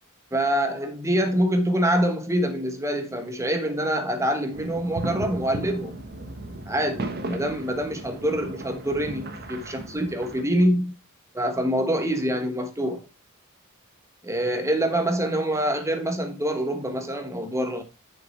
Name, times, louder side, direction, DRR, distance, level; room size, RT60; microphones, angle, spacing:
voice 1, 0.3-6.0 6.7-10.9 11.3-13.0 14.2-17.8, right 1 dB, 15° right, 1.2 m, -25 dB
sound 1, 4.5-10.4, right 1 dB, 50° right, 1.2 m, -36 dB
6.6 x 6.5 x 4.4 m
head